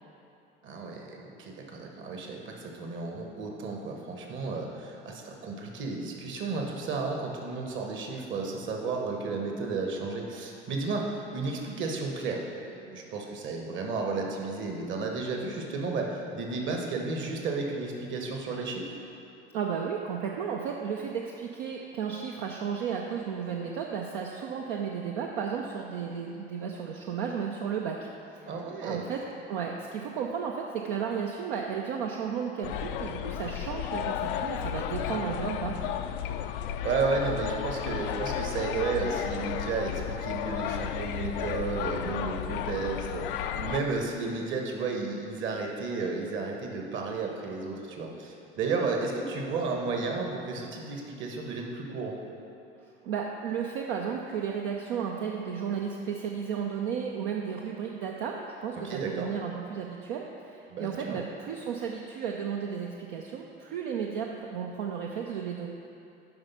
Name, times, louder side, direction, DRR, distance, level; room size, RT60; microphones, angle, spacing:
voice 1, 0.6-12.4 12.7-18.9 28.5-29.1 35.1-35.4 36.8-52.2 58.8-59.3 60.7-61.2, right 4 dB, 40° right, 1 dB, 1.3 m, -33 dB
voice 2, 19.5-28.5 28.8-29.2 29.5-35.9 53.0-65.7, right 7 dB, 60° right, 0 dB, 0.7 m, -33 dB
sound 1, 32.6-43.8, left 10 dB, 60° left, 0.5 m, -33 dB
7.8 x 5.5 x 5.6 m, 2.7 s
figure-of-eight pair, 65°, 30 cm